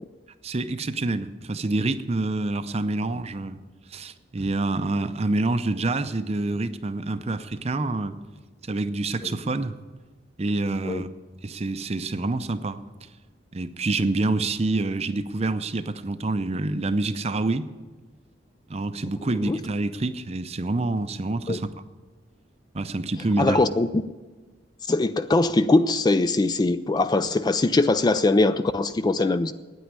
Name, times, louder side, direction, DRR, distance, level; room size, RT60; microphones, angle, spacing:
voice 1, 0.4-3.6 3.9-8.2 8.6-9.8 10.4-11.1 11.4-12.8 13.5-17.7 18.7-21.7 22.7-23.6, right 2 dB, 35° right, 11 dB, 0.6 m, -27 dB
voice 2, 19.2-19.6 21.5-21.6 23.4-24.0 24.9-29.5, left 2 dB, 20° left, 12 dB, 0.3 m, -22 dB
9.3 x 9.2 x 9.8 m, 1.3 s
head